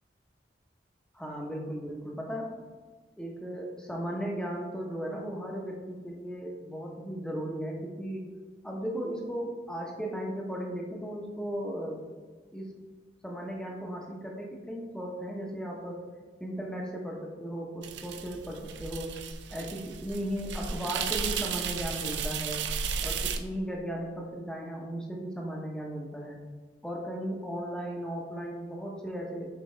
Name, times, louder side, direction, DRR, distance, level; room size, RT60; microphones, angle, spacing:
voice 1, 1.1-2.6 3.2-8.2 8.6-12.0 12.5-12.7 13.2-16.0 16.4-19.1 19.5-22.6 23.0-26.4 26.8-29.4, equal, 5° left, -1 dB, 0.9 m, -36 dB
sound 1, 17.8-23.4, right 6 dB, 80° right, 0.5 m, -34 dB
7.0 x 4.5 x 3.2 m, 1.4 s
head